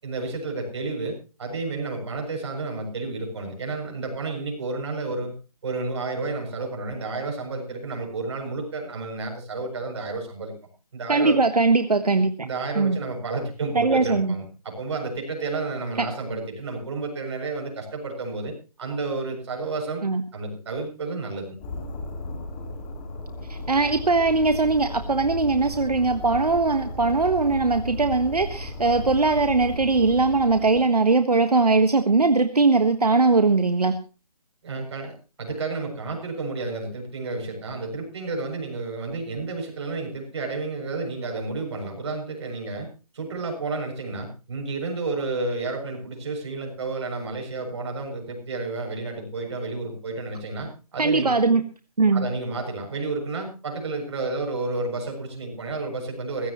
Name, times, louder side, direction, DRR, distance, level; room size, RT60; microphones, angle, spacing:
voice 1, 0.0-5.3 5.6-10.5 10.9-11.4 12.4-20.0 20.3-21.6 34.6-42.9 43.1-51.3 52.1-56.5, right 3 dB, 45° right, 2 dB, 7.5 m, -31 dB
voice 2, 11.1-12.3 12.8-13.0 13.7-14.3 16.0-16.1 20.0-20.2 23.5-34.0 51.0-51.6 52.0-52.3, right 3 dB, 85° right, 8 dB, 1.5 m, -20 dB
sound 1, 21.6-30.8, left 1 dB, 20° left, 3.0 m, -35 dB
20.5 x 16.5 x 3.1 m, 0.34 s
figure-of-eight pair, 155°, 20 cm